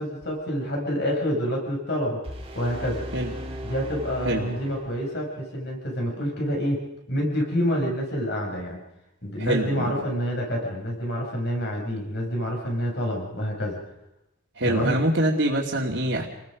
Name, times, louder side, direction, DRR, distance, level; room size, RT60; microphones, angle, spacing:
voice 1, 0.0-2.2 2.5-3.0 3.6-6.8 7.1-8.8 9.2-13.8 14.6-14.9, equal, 55° left, 0 dB, 6.8 m, -27 dB
sound 1, 2.2-5.3, equal, 25° right, 2.2 m, -37 dB
voice 2, 9.4-10.0 14.6-16.3, right 1 dB, 65° right, -5 dB, 2.7 m, -24 dB
30.0 x 20.0 x 5.3 m, 0.87 s
head